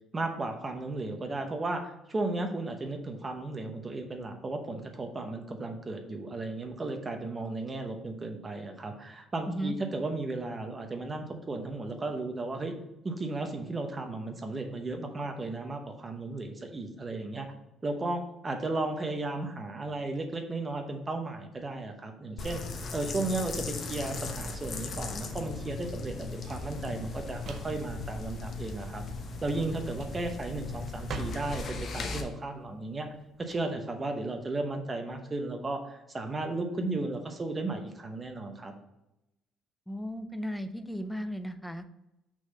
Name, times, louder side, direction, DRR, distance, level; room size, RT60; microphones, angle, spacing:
voice 1, 0.1-12.7 13.0-17.5 17.8-29.0 29.4-33.1 33.4-38.7, right 2 dB, 20° right, 5 dB, 0.8 m, -35 dB
sound 1, 22.4-32.2, left 3 dB, 40° left, 0.9 m, -38 dB
Drawer open or close, 24.0-33.6, right 5 dB, 50° right, 0.6 m, -46 dB
voice 2, 39.9-41.9, equal, ahead, 9 dB, 0.4 m, -35 dB
6.1 x 4.0 x 5.3 m, 0.91 s
cardioid pair, 150°, 0 cm